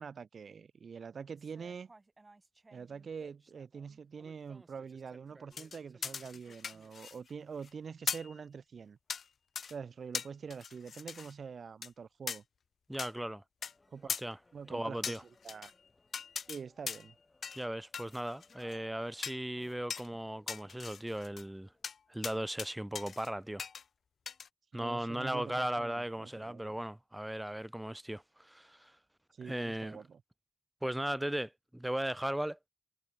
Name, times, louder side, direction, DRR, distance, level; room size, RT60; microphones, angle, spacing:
voice 1, 0.0-1.9 2.7-9.0 9.7-12.4 13.9-14.1 14.5-15.2 15.4-15.7 16.5-17.1 24.7-26.8 29.4-30.2, right 6 dB, 80° right, 0.5 m, -45 dB
sound 1, 1.4-6.9, right 2 dB, 35° right, 3.7 m, -61 dB
sound 2, 5.5-7.3 7.6-7.7 8.1-8.3 9.1-9.2 9.5-9.7 10.1-11.3 11.8-11.9 12.3-12.4 13.0-13.1 13.6-13.7 14.1-14.2 15.0-15.7 16.1-16.6 16.9-17.1 17.4-17.6 17.9-18.8 19.2-19.4 19.9-20.1 20.5-21.4 21.8-22.0 22.2-22.7 22.9-23.3 23.6-23.8 24.3-24.5, left 6 dB, 90° left, 0.3 m, -39 dB
voice 2, 12.9-13.4 14.2-14.4 14.7-15.2 17.5-21.7 22.1-23.6 24.7-28.9 29.4-30.0 30.8-32.6, right 1 dB, 10° right, 0.4 m, -37 dB
sound 3, 13.6-21.9, left 3 dB, 35° left, 3.3 m, -67 dB
cardioid pair, 70°, 0 cm